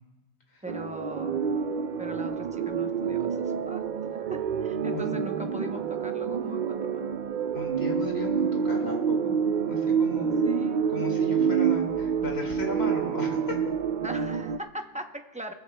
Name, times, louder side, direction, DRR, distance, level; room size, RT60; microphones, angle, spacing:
voice 1, 0.6-1.4 2.0-3.8 4.3-7.1 10.4-10.8 14.0-15.5, right 1 dB, 10° right, 5 dB, 0.7 m, -40 dB
sound 1, 0.7-14.6, right 7 dB, 55° right, 0.6 m, -28 dB
voice 2, 7.5-9.4 9.7-10.4 10.9-13.6, left 2 dB, 70° left, 0 dB, 2.5 m, -36 dB
20.0 x 15.0 x 2.2 m, 1.1 s
omnidirectional pair, 1.1 m